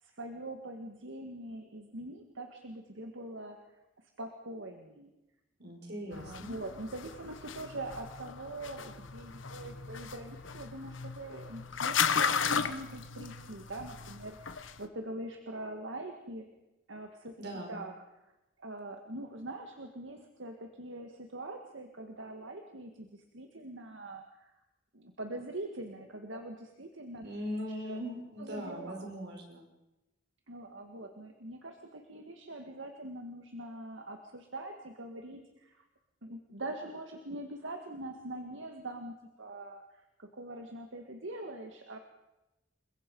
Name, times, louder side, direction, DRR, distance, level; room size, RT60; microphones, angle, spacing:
voice 1, 0.0-3.6 4.2-5.1 6.1-16.5 16.9-17.3 17.7-18.0 18.6-24.5 24.9-27.3 27.5-28.0 28.4-29.1 30.5-35.8 36.2-42.0, right 1 dB, 75° right, 4 dB, 1.8 m, -43 dB
voice 2, 5.6-6.6 17.4-17.8 27.2-29.7, equal, 60° right, 2 dB, 5.4 m, -40 dB
sound 1, 6.1-14.8, left 6 dB, 85° left, 1.2 m, -35 dB
29.0 x 22.0 x 5.4 m, 0.99 s
head